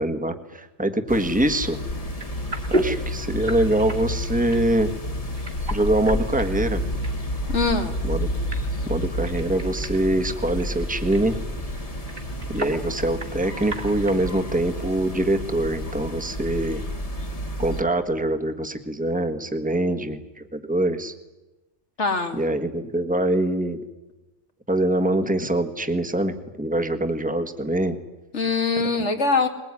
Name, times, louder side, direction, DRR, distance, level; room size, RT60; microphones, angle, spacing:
voice 1, 0.0-1.8 2.7-4.9 5.7-6.8 8.0-8.3 8.8-11.4 12.5-16.8 17.6-21.1 22.3-23.8 24.7-28.0 28.8-28.9, right 1 dB, 5° right, 7 dB, 1.5 m, -24 dB
sound 1, 1.1-17.8, equal, 30° left, 1.7 m, -30 dB
sound 2, 2.0-14.4, right 1 dB, 50° right, 2.7 m, -35 dB
voice 2, 7.5-8.0 22.0-22.4 28.3-29.5, left 4 dB, 75° left, 5 dB, 2.6 m, -22 dB
21.0 x 21.0 x 9.8 m, 1.1 s
omnidirectional pair, 1.2 m